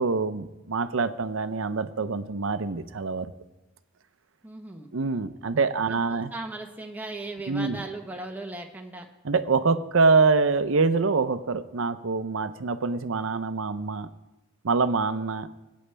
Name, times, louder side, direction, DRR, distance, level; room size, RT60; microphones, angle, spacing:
voice 1, 0.0-3.3 4.9-6.3 7.5-7.8 9.2-14.1 14.6-15.5, right 4 dB, 75° right, 12 dB, 0.6 m, -25 dB
voice 2, 4.4-4.9 5.9-9.1, right 2 dB, 10° right, 2 dB, 1.0 m, -37 dB
20.5 x 8.5 x 3.4 m, 1.0 s
head